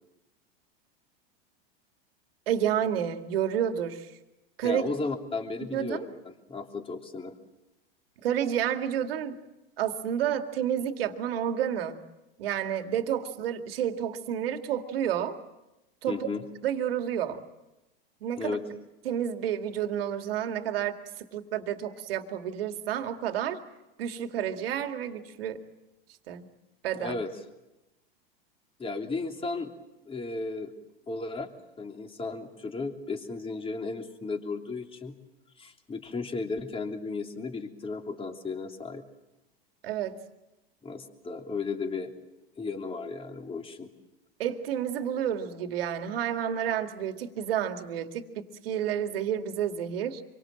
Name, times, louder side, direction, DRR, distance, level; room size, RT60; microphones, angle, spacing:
voice 1, 2.5-4.1 4.6-4.9 5.7-6.1 8.2-9.4 9.8-12.0 12.4-15.4 16.0-16.3 16.6-17.4 18.2-18.6 19.0-23.6 24.0-25.6 26.3-26.5 26.8-27.2 39.8-40.2 44.4-50.2, right 9 dB, 70° right, 7 dB, 2.3 m, -30 dB
voice 2, 4.6-7.3 16.1-16.4 18.4-18.6 27.0-27.3 28.8-29.7 30.0-30.7 31.1-31.5 31.8-35.1 35.6-39.0 40.8-42.1 42.6-43.9, left 3 dB, 20° left, 4 dB, 3.1 m, -34 dB
26.0 x 24.0 x 7.7 m, 0.99 s
hypercardioid pair, 95°, 30 cm